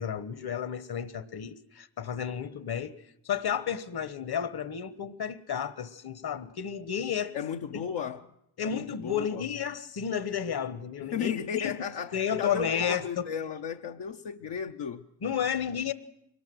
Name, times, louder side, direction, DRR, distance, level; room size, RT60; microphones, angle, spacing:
voice 1, 0.0-2.9 3.2-7.4 8.6-11.8 12.1-13.3 15.2-15.9, left 8 dB, 65° left, 1.4 m, -32 dB
voice 2, 7.3-8.3 8.6-9.4 11.0-15.1, left 7 dB, 85° left, 0.9 m, -35 dB
23.5 x 19.0 x 7.9 m
cardioid pair, 75°, 41 cm